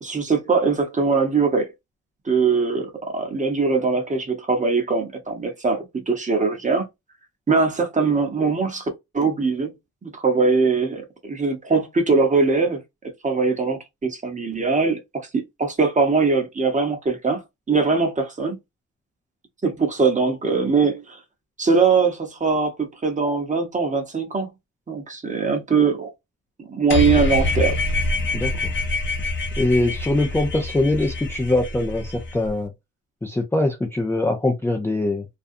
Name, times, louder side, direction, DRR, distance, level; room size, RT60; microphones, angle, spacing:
voice 1, 0.0-1.7 2.2-6.9 7.5-9.7 10.0-12.8 13.2-15.0 15.3-17.4 17.7-18.6 19.6-21.2 21.6-24.5 24.9-26.1 26.6-27.8, right 4 dB, 25° right, 0.9 m, -21 dB
sound 1, 26.9-32.5, left 2 dB, 40° left, 0.8 m, -25 dB
voice 2, 28.3-28.7 29.6-32.7 33.2-35.3, left 2 dB, 10° left, 0.5 m, -22 dB
2.5 x 2.2 x 2.6 m
cardioid pair, 90°, 30 cm